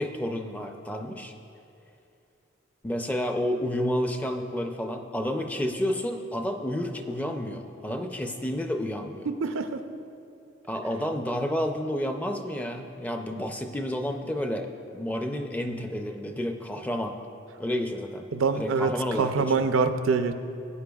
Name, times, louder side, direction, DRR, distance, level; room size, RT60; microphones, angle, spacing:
voice 1, 0.0-1.3 2.8-9.3 10.6-14.7 14.9-17.2 17.6-18.3 18.6-19.7, left 1 dB, 10° left, 5 dB, 0.4 m, -30 dB
voice 2, 9.4-9.8 18.3-20.3, right 4 dB, 90° right, 9 dB, 0.5 m, -25 dB
16.5 x 8.9 x 2.3 m, 2.7 s
head